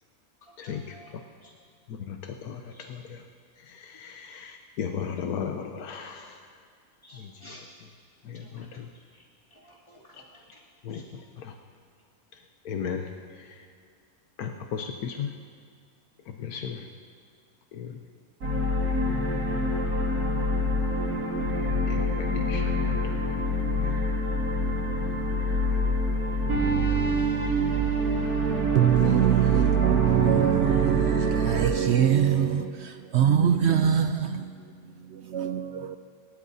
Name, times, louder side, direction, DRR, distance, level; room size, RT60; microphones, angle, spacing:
voice 1, 0.6-1.1 1.4-1.5 2.7-2.9 7.0-7.6 8.4-8.5 9.5-10.6 10.9-11.0, equal, 20° left, -6 dB, 2.9 m, -52 dB
voice 2, 4.0-4.5 4.8-6.2 10.9-11.0 12.7-13.0 14.4-15.3 16.4-16.8 17.8-17.9 21.9-22.6 26.5-26.6, left 7 dB, 90° left, 4 dB, 1.3 m, -33 dB
sound 1, 18.4-31.7, right 1 dB, 85° right, 3.1 m, -26 dB
voice 3, 28.7-36.0, right 9 dB, 65° right, 8 dB, 0.7 m, -23 dB
28.0 x 13.0 x 2.7 m, 2.2 s
omnidirectional pair, 1.5 m